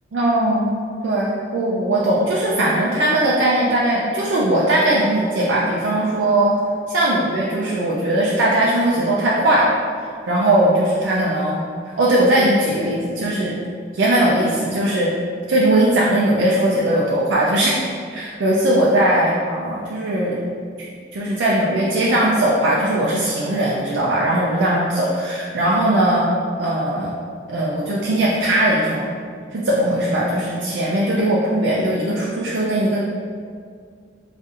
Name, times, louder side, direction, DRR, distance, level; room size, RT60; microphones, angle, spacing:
voice 1, 0.1-0.8 1.0-6.5 6.9-9.7 10.3-13.6 13.9-15.1 15.5-17.7 18.1-20.4 21.1-26.3 26.6-27.1 27.5-29.1 29.5-33.0, right 1 dB, 85° right, -5 dB, 0.4 m, -19 dB
4.0 x 2.6 x 2.5 m, 2.1 s
head